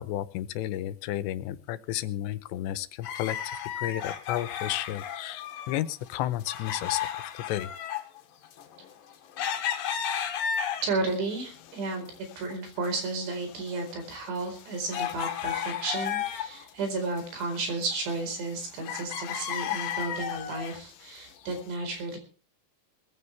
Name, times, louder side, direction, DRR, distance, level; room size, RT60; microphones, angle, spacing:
voice 1, 0.0-3.4 3.8-7.0 7.5-7.7, left 13 dB, 90° left, 14 dB, 3.2 m, -32 dB
sound 1, 3.0-5.8 6.1-11.2 11.6-12.5 12.8-12.9 13.5-16.7 17.0-18.6 18.8-20.8 21.4-21.5, left 8 dB, 60° left, 3.0 m, -33 dB
voice 2, 10.8-12.1 12.4-22.2, right 3 dB, 75° right, 6 dB, 6.8 m, -33 dB
20.5 x 15.0 x 3.4 m, 0.39 s
omnidirectional pair, 4.9 m